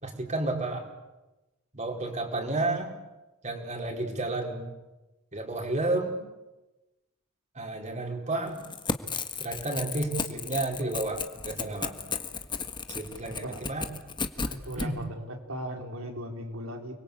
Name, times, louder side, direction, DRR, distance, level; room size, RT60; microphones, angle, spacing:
voice 1, 0.0-0.9 1.7-2.9 3.4-4.6 5.3-6.2 7.5-8.6 9.4-12.0 12.9-13.9 14.8-15.0, right 2 dB, 35° right, 2 dB, 4.8 m, -31 dB
Crackle / Tearing, 8.5-14.9, left 4 dB, 25° left, 1.5 m, -34 dB
voice 2, 14.4-17.0, equal, 85° right, 4 dB, 4.7 m, -38 dB
30.0 x 22.5 x 8.6 m, 1.0 s
head